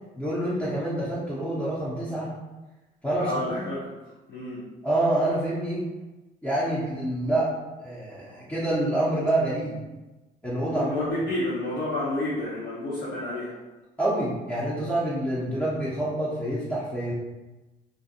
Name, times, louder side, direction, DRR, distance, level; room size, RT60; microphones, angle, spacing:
voice 1, 0.2-2.3 3.0-3.4 4.8-5.8 6.4-7.5 7.8-9.8 10.4-11.1 14.0-17.1, right 1 dB, 10° left, -9 dB, 0.6 m, -27 dB
voice 2, 3.2-3.9 4.3-4.6 10.7-13.6, left 1 dB, 65° left, -9 dB, 0.8 m, -30 dB
2.5 x 2.2 x 2.6 m, 1.1 s
cardioid pair, 110°, 17 cm